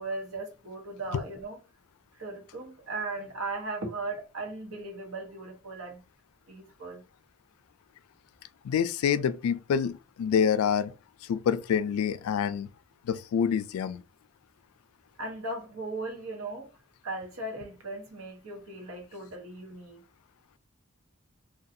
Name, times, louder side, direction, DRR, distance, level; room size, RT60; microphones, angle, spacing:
voice 1, 0.0-1.6 2.2-6.0 6.5-7.0 15.2-16.7 17.0-20.0, right 2 dB, 75° right, 0.9 m, -37 dB
voice 2, 8.6-10.9 11.3-12.7 13.0-14.0, left 7 dB, 90° left, 0.3 m, -27 dB
2.5 x 2.2 x 2.6 m
head